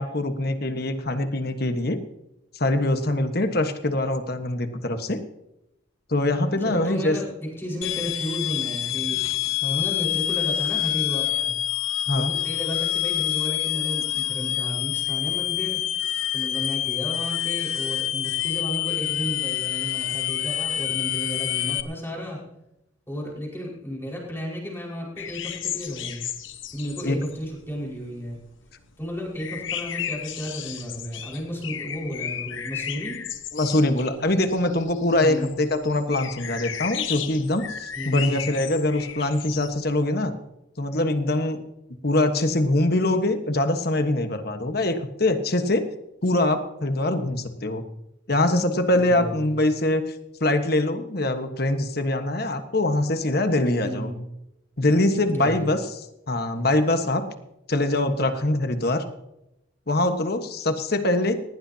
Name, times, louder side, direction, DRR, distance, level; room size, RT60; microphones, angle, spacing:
voice 1, 0.0-2.0 2.5-5.2 6.1-7.2 9.6-9.8 12.1-12.3 27.0-27.2 33.5-40.3 40.8-41.6 42.0-45.9 46.2-47.8 48.3-50.0 50.4-54.1 54.8-55.8 56.3-57.3 57.7-59.0 59.9-61.4, left 1 dB, 50° left, 7 dB, 1.4 m, -23 dB
voice 2, 6.5-9.2 9.7-11.6 12.1-15.8 16.3-22.4 23.1-26.2 26.7-28.4 29.0-33.2 35.2-35.6 37.9-38.3 48.9-49.5 53.8-54.2 55.3-55.7, equal, 10° left, -3 dB, 5.1 m, -33 dB
sound 1, 7.8-21.8, left 13 dB, 90° left, 0.9 m, -27 dB
sound 2, 25.2-28.4 28.7-39.9, left 9 dB, 70° left, 1.2 m, -35 dB
19.0 x 18.0 x 2.9 m, 0.87 s
head